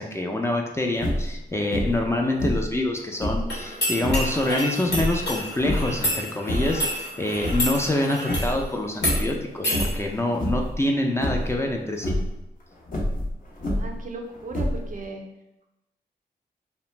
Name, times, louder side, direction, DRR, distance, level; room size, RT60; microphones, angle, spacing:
voice 1, 0.0-12.2, left 1 dB, 15° left, 1 dB, 0.4 m, -26 dB
sound 1, 0.9-1.4 1.7-2.1 2.4-3.5 4.0-4.3 4.9-6.0 6.3-6.9 7.2-8.0 8.3-8.7 9.0-9.4 9.7-10.1 10.4-10.8 11.2-11.6 11.9-12.3 12.9-14.0 14.5-15.0, equal, 55° left, 0.6 m, -27 dB
sound 2, 3.5-8.5 8.9-9.2 9.6-9.9, equal, 85° left, 1.0 m, -29 dB
voice 2, 13.7-15.2, right 2 dB, 50° right, 2 dB, 0.5 m, -36 dB
2.4 x 2.1 x 3.0 m, 0.91 s
cardioid pair, 70°, 17 cm